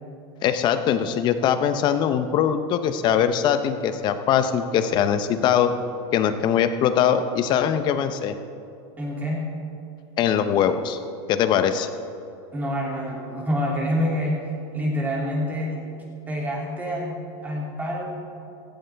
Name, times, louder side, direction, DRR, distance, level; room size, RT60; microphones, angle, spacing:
voice 1, 0.4-5.7 6.1-8.4 10.2-11.0 11.3-11.9, left 9 dB, 30° left, 10 dB, 0.7 m, -21 dB
voice 2, 9.0-9.4 12.5-14.4 14.7-15.9 16.3-17.2 17.4-18.1, equal, 10° right, -3 dB, 2.7 m, -26 dB
16.0 x 15.0 x 3.5 m, 2.6 s
supercardioid pair, 155°, 14 cm